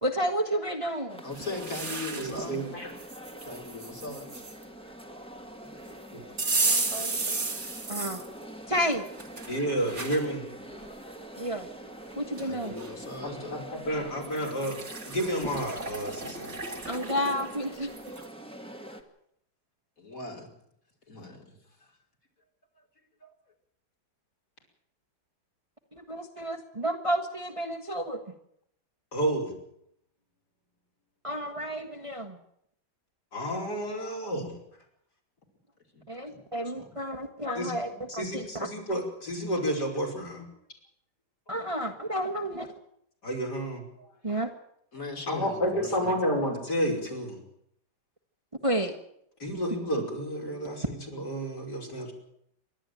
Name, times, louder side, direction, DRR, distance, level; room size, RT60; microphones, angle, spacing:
voice 1, 0.0-1.2 6.9-7.2 7.9-8.2 8.7-9.1 11.4-11.7 12.2-12.7 16.9-17.9 25.9-28.2 31.2-32.4 36.1-38.7 41.5-42.7 44.2-44.5 48.6-48.9, equal, 20° right, 4 dB, 1.5 m, -31 dB
sound 1, 1.1-19.0, right 1 dB, 5° left, 1.9 m, -45 dB
voice 2, 1.2-2.7 3.4-4.4 5.8-5.9 6.2-6.4 12.4-13.6 20.0-20.5 21.1-21.6 23.2-23.3 35.9-36.0 36.3-37.0 41.9-42.0 44.0-44.2 44.9-46.1, left 3 dB, 50° left, 1 dB, 4.5 m, -40 dB
sound 2, 1.3-2.5 3.0-4.5 6.4-8.3 8.8-10.2 10.8-10.9 12.0-12.1 12.4-12.9 14.2-18.3, right 3 dB, 40° right, 2.7 m, -33 dB
voice 3, 2.1-2.9 6.1-6.2 9.5-10.4 13.2-16.5 29.1-29.6 33.3-34.6 37.5-37.7 38.1-40.4 43.2-43.8 45.3-47.4 49.4-52.1, equal, 65° left, -1 dB, 6.0 m, -31 dB
27.5 x 12.0 x 9.1 m, 0.75 s
omnidirectional pair, 1.9 m